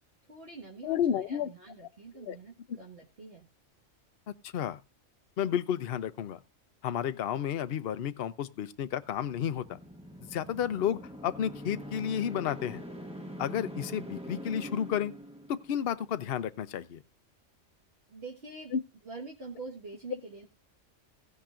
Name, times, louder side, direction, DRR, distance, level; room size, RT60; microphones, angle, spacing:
voice 1, 0.3-3.5 18.1-18.7 19.1-20.5, right 3 dB, 50° right, 1.8 m, -45 dB
voice 2, 0.8-1.5 2.2-2.4 4.4-4.8 5.4-6.4 6.8-9.8 10.3-12.8 13.4-15.1 15.5-17.0 18.7-18.8, left 9 dB, 55° left, 0.8 m, -31 dB
sound 1, 9.0-15.9, equal, 5° right, 1.0 m, -44 dB
16.0 x 10.5 x 2.5 m
omnidirectional pair, 1.3 m